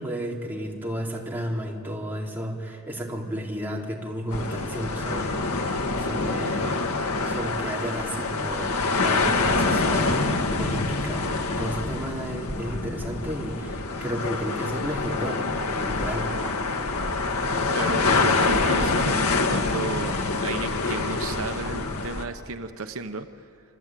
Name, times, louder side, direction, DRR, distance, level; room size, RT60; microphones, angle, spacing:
voice 1, 0.0-6.8 7.2-16.3, equal, 10° right, -2 dB, 3.7 m, -33 dB
sound 1, 4.3-22.2, left 3 dB, 80° left, 2.1 m, -26 dB
voice 2, 17.7-23.3, right 3 dB, 65° right, 8 dB, 1.0 m, -33 dB
26.5 x 24.5 x 9.1 m, 2.4 s
head